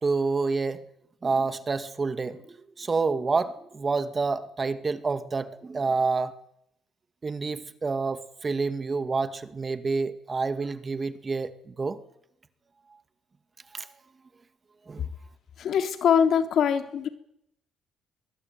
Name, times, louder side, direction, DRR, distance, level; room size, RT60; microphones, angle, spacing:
voice 1, 0.0-0.8 1.2-2.4 2.8-6.3 7.2-12.0 13.7-13.9 14.9-15.1, right 4 dB, 30° right, 11 dB, 2.3 m, -28 dB
voice 2, 15.6-17.1, left 8 dB, 65° left, 8 dB, 3.5 m, -23 dB
22.5 x 22.0 x 9.4 m, 0.75 s
cardioid pair, 80°, 0 cm